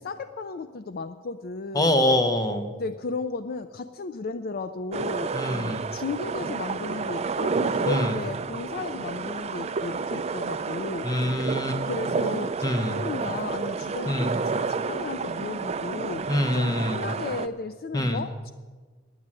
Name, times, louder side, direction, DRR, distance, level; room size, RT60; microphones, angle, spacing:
voice 1, 0.0-1.9 2.7-11.1 11.9-18.5, left 4 dB, 50° left, 11 dB, 0.4 m, -34 dB
voice 2, 1.7-2.7 5.3-5.9 7.9-8.1 11.0-11.8 12.6-13.0 14.1-14.4 16.3-17.0 17.9-18.2, left 1 dB, 20° left, 8 dB, 1.0 m, -25 dB
sound 1, 4.9-17.5, right 4 dB, 35° right, 0.4 m, -30 dB
10.0 x 9.7 x 7.5 m, 1.4 s
head